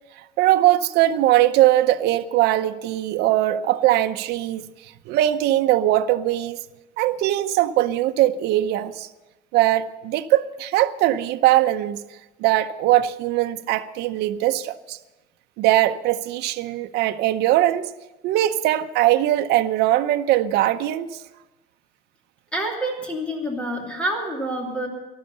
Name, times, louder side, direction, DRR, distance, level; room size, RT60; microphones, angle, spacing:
voice 1, 0.4-4.6 5.1-6.6 7.0-9.1 9.5-12.0 12.4-15.0 15.6-17.9 18.2-21.2, right 14 dB, 70° right, 0.7 m, -20 dB
voice 2, 22.5-24.9, right 1 dB, 5° left, 2.7 m, -27 dB
14.5 x 12.0 x 6.7 m
cardioid pair, 175°, 18 cm